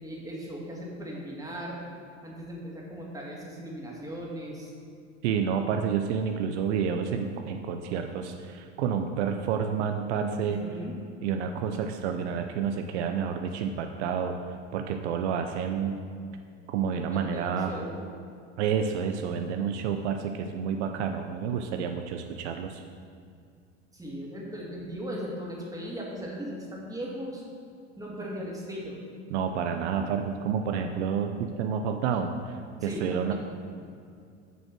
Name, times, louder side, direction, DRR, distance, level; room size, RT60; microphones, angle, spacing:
voice 1, 0.0-1.9 2.2-4.7 10.4-10.9 17.1-18.0 23.9-27.4 28.0-29.0 32.8-33.3, equal, 10° right, -4 dB, 2.4 m, -38 dB
voice 2, 5.2-10.6 11.2-14.4 14.7-16.0 16.7-17.7 18.6-22.8 29.3-33.3, right 7 dB, 70° right, 5 dB, 0.7 m, -29 dB
7.9 x 5.3 x 6.0 m, 2.3 s
hypercardioid pair, 85°, 35 cm